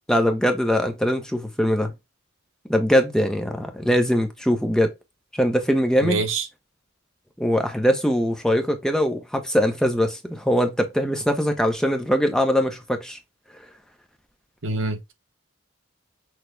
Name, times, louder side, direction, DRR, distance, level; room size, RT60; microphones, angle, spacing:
voice 1, 0.1-1.9 2.7-4.9 5.3-6.2 7.4-13.2, equal, 5° left, 0.7 m, -22 dB
voice 2, 6.0-6.4 14.6-15.1, right 3 dB, 70° right, 1.0 m, -25 dB
6.2 x 2.2 x 3.2 m
head